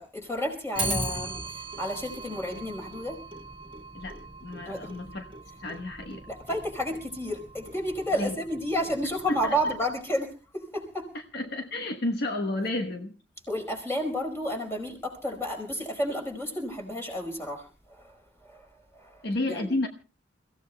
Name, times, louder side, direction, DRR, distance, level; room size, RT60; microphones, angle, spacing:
voice 1, 0.0-3.2 4.6-4.9 6.3-11.1 13.5-18.2 18.4-18.6 18.9-19.2 19.5-19.7, equal, 15° left, 2 dB, 4.6 m, -31 dB
voice 2, 0.8-1.1 3.9-5.3 5.6-6.3 8.1-8.3 9.3-9.6 11.1-13.1 19.2-19.9, left 2 dB, 60° left, 3 dB, 1.2 m, -31 dB
Clock, 0.8-10.1, right 2 dB, 25° right, 1.8 m, -39 dB
29.0 x 16.0 x 2.3 m, 0.34 s
head